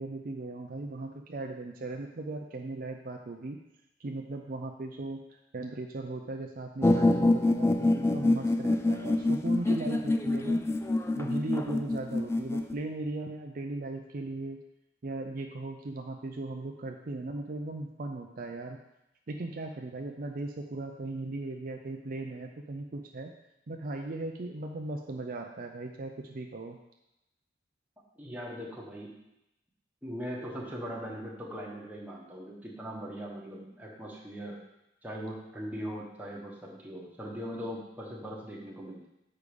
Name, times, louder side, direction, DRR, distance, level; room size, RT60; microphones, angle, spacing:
voice 1, 0.0-3.6 4.0-5.2 5.5-10.6 11.2-14.6 15.0-18.8 19.3-23.3 23.7-26.8, right 2 dB, 50° right, 3 dB, 0.5 m, -38 dB
sound 1, 6.8-12.7, left 2 dB, 15° left, 0.3 m, -26 dB
voice 2, 28.2-29.1 30.0-34.6 35.0-39.1, equal, 10° right, -3 dB, 1.3 m, -40 dB
6.8 x 4.8 x 5.1 m, 0.88 s
head